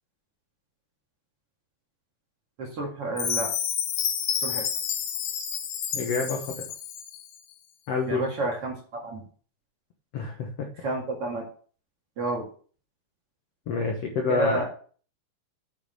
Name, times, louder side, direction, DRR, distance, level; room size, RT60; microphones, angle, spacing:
voice 1, 2.6-3.5 4.4-4.7 8.1-9.2 10.8-11.4 12.2-12.5 14.3-14.7, right 2 dB, 45° right, -1 dB, 2.3 m, -30 dB
Chime, 3.2-7.3, left 8 dB, 90° left, 3.4 m, -30 dB
voice 2, 5.9-6.7 7.9-8.3 10.1-10.7 13.7-14.6, left 4 dB, 75° left, 2 dB, 1.4 m, -28 dB
8.8 x 6.2 x 5.0 m, 0.43 s
omnidirectional pair, 4.6 m